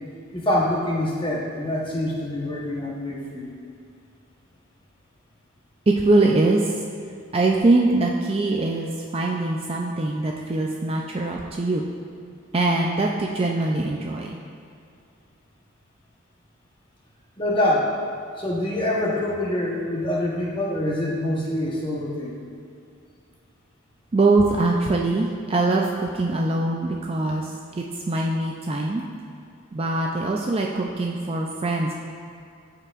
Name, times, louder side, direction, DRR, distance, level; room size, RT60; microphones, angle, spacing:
voice 1, 0.3-3.5 17.4-17.9 18.4-22.4, left 1 dB, 20° left, -4 dB, 1.0 m, -25 dB
voice 2, 5.9-6.7 7.3-11.9 12.5-14.4 24.1-29.0 29.7-31.9, right 2 dB, 25° right, -1 dB, 0.4 m, -22 dB
13.5 x 4.6 x 2.4 m, 2.4 s
head